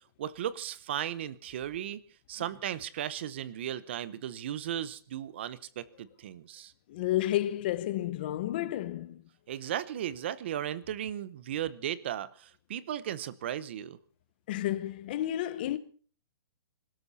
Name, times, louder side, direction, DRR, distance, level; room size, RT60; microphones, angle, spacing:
voice 1, 0.2-2.0 2.3-6.7 9.5-14.0, right 10 dB, 30° right, 0.8 m, -36 dB
voice 2, 6.9-9.2 14.5-15.8, left 13 dB, 25° left, 0.8 m, -31 dB
26.5 x 13.0 x 4.1 m
hypercardioid pair, 180°, 13 cm